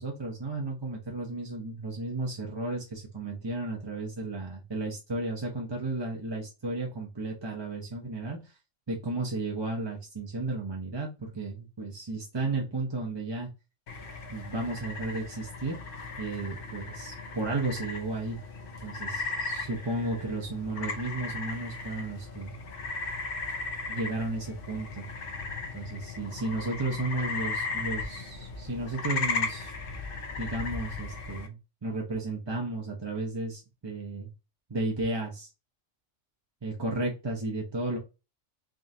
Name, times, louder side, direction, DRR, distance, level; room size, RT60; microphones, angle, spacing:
voice 1, 0.0-8.6 8.9-13.5 14.3-15.8 16.2-18.4 18.8-22.5 23.9-25.1 25.7-29.7 30.4-34.3 34.7-35.5 36.6-38.0, right 2 dB, 25° right, -2 dB, 0.7 m, -33 dB
sound 1, 13.9-31.5, left 3 dB, 50° left, 0.8 m, -36 dB
3.7 x 3.7 x 2.7 m, 0.28 s
omnidirectional pair, 1.3 m